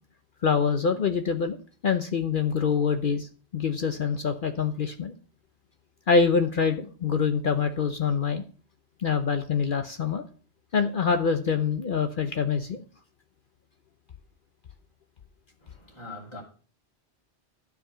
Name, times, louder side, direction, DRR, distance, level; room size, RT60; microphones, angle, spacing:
voice 1, 0.4-1.6 1.8-3.3 3.5-5.1 6.1-8.4 9.0-10.2 10.7-12.8, left 5 dB, 55° left, 0.9 m, -25 dB
voice 2, 15.6-16.4, left 2 dB, 25° left, 2.6 m, -42 dB
12.0 x 5.0 x 6.1 m
omnidirectional pair, 1.2 m